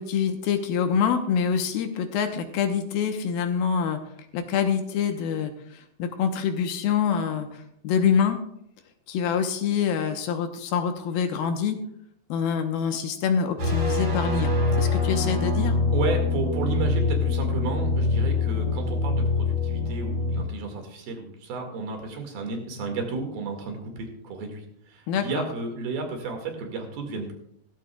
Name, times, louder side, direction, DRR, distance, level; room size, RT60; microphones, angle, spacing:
voice 1, 0.0-4.0 4.3-8.4 9.1-11.8 12.3-15.8 25.1-25.5, left 7 dB, 75° left, 6 dB, 2.7 m, -26 dB
sound 1, 13.6-20.4, left 3 dB, 50° right, 4.5 m, -24 dB
voice 2, 15.9-27.3, right 4 dB, 70° right, 3 dB, 3.8 m, -32 dB
16.5 x 14.5 x 2.3 m, 0.72 s
omnidirectional pair, 4.5 m